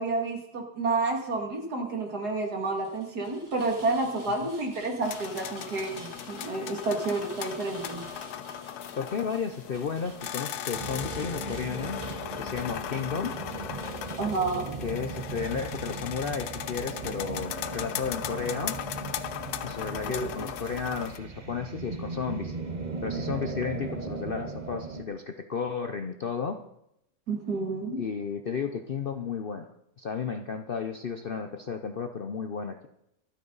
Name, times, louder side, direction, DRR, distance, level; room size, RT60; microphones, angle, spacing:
voice 1, 0.0-8.1 14.2-14.8 20.1-20.5 27.3-28.0, right 3 dB, 75° right, 2 dB, 2.9 m, -30 dB
Rain, 2.6-15.0, equal, 10° right, 3.4 m, -50 dB
sound 1, 5.0-21.2, left 10 dB, 75° left, 1.2 m, -38 dB
voice 2, 9.0-12.0 12.4-13.4 14.8-18.8 19.6-22.5 23.0-26.6 28.0-29.7 30.0-32.9, left 6 dB, 55° left, 7 dB, 0.6 m, -33 dB
sound 2, 10.7-25.0, right 4 dB, 35° right, 1.0 m, -38 dB
24.0 x 9.6 x 4.0 m, 0.81 s
omnidirectional pair, 1.7 m